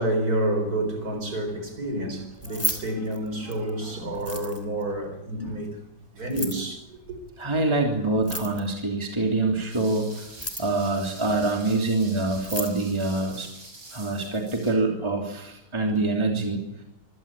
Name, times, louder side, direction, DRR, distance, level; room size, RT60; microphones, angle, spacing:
voice 1, 0.0-5.8 6.1-7.2, right 1 dB, 45° right, 4.7 m, -29 dB
Keys jangling, 2.3-3.7 4.1-4.8 6.2-6.7 8.1-8.8 10.2-10.9 12.0-12.1 12.3-12.8, right 1 dB, 5° left, 3.1 m, -33 dB
voice 2, 7.4-10.3 10.6-13.5 13.9-16.6, right 2 dB, 15° right, 3.1 m, -25 dB
sound 1, 9.7-14.7, right 2 dB, 70° right, 7.7 m, -46 dB
26.0 x 16.5 x 8.9 m
omnidirectional pair, 2.3 m